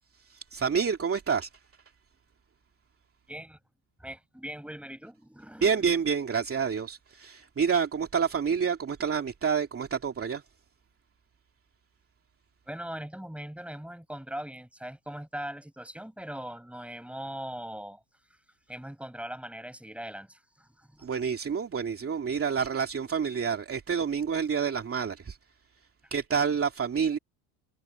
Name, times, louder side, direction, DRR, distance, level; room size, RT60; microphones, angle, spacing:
voice 1, 0.3-1.5 5.6-10.4 21.0-25.4 26.1-27.2, right 6 dB, 30° right, 2.5 m, -28 dB
voice 2, 3.3-3.6 4.0-5.9 12.7-18.0 18.7-21.1, right 1 dB, 5° right, 7.3 m, -40 dB
supercardioid pair, 95°, 48 cm